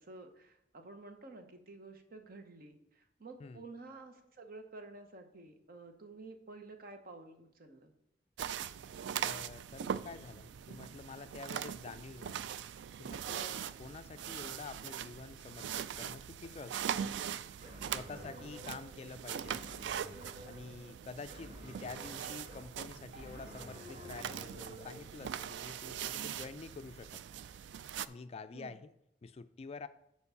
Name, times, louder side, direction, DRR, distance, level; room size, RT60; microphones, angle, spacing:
voice 1, 0.0-7.9 18.1-18.5 28.5-28.8, right 3 dB, 55° right, 6 dB, 0.9 m, -51 dB
sound 1, 8.4-28.1, right 9 dB, 70° right, 0.3 m, -41 dB
voice 2, 9.2-12.4 13.0-17.0 17.9-19.6 20.5-27.2 28.1-28.9 29.2-29.9, left 4 dB, 35° left, 11 dB, 0.3 m, -48 dB
sound 2, 17.6-25.0, equal, 35° right, 1.5 m, -51 dB
7.0 x 4.6 x 6.9 m, 0.80 s
head